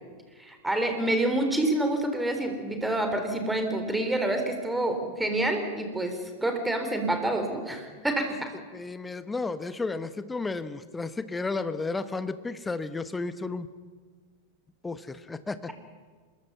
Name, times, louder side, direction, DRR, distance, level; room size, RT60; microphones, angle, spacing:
voice 1, 0.4-8.5, right 1 dB, 5° right, 5 dB, 3.7 m, -27 dB
voice 2, 8.7-13.7 14.8-15.7, left 3 dB, 10° left, 13 dB, 1.1 m, -33 dB
26.5 x 21.5 x 5.7 m, 1.5 s
figure-of-eight pair, 90°, 0 cm